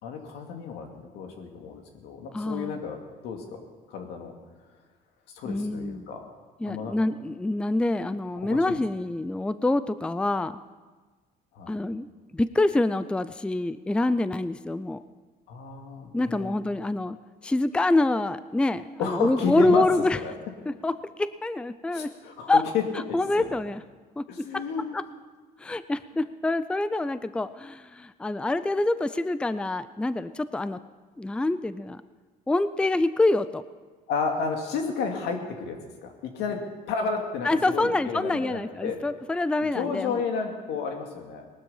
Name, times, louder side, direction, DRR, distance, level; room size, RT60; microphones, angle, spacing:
voice 1, 0.0-4.3 5.3-6.3 6.7-6.9 8.4-8.8 11.5-11.7 15.5-16.6 19.0-19.8 20.2-20.3 21.9-22.8 23.1-23.5 24.3-25.0 34.1-36.6 36.9-39.0 39.6-41.4, left 5 dB, 85° left, 3 dB, 2.3 m, -32 dB
voice 2, 2.3-2.8 5.5-6.1 6.6-10.6 11.7-12.1 12.3-15.0 16.1-17.2 17.4-20.2 20.7-22.1 22.5-22.6 23.1-23.8 24.2-24.3 24.5-24.6 24.9-25.0 25.6-30.8 31.2-32.0 32.5-33.6 37.4-40.2, left 2 dB, 5° left, 14 dB, 0.4 m, -26 dB
19.0 x 12.5 x 5.6 m, 1.4 s
cardioid pair, 110°, 17 cm